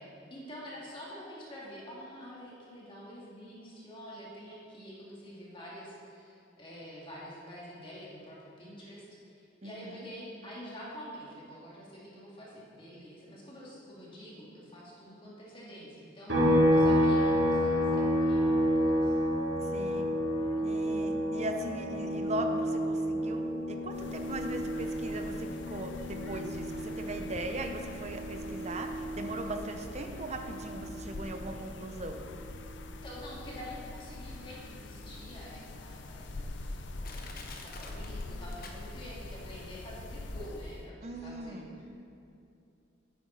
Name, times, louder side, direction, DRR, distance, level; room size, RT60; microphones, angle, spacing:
voice 1, 0.0-19.2 20.5-20.9 33.0-41.8, equal, 30° left, -6 dB, 2.0 m, -47 dB
voice 2, 9.6-10.1 16.8-17.1 19.7-20.1 20.6-32.2 41.0-41.8, right 1 dB, 35° right, 5 dB, 0.8 m, -39 dB
sound 1, 16.3-29.8 30.2-32.4, equal, 70° right, 2.5 m, -30 dB
sound 2, 23.9-40.9, left 2 dB, 70° left, 0.6 m, -44 dB
Crushing, 37.0-39.2 39.5-39.6, left 4 dB, 50° left, 1.0 m, -48 dB
10.5 x 9.2 x 3.9 m, 2.6 s
head